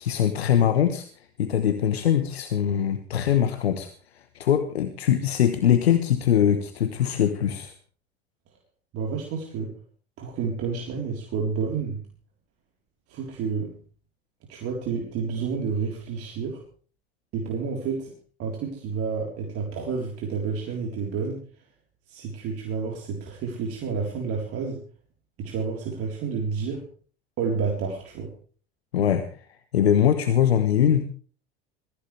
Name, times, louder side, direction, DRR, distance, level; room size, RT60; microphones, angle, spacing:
voice 1, 0.0-7.7 28.9-29.5 29.7-31.0, left 9 dB, 80° left, 10 dB, 1.3 m, -22 dB
voice 2, 8.9-9.7 10.2-12.0 13.1-13.7 14.5-16.6 17.3-18.1 18.4-21.4 22.1-24.8 25.4-26.8 27.4-28.3, right 5 dB, 50° right, 0 dB, 3.9 m, -30 dB
22.0 x 15.5 x 3.4 m, 0.40 s
hypercardioid pair, 75°, 31 cm